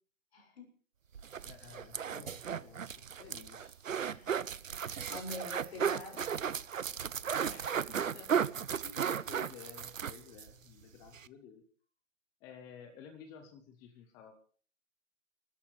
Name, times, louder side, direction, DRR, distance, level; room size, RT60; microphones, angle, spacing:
voice 1, 0.3-0.7 4.1-4.4 4.8-6.3, left 2 dB, 50° left, 3 dB, 6.5 m, -45 dB
sound 1, 1.1-10.5 10.8-10.9 11.1-11.3, right 7 dB, 70° right, 0.9 m, -35 dB
voice 2, 1.4-3.7 6.4-6.5 7.5-8.5 8.8-11.6 12.4-14.3, left 7 dB, 10° left, 7 dB, 0.7 m, -53 dB
29.5 x 13.5 x 3.3 m, 0.43 s
figure-of-eight pair, 140°, 40 cm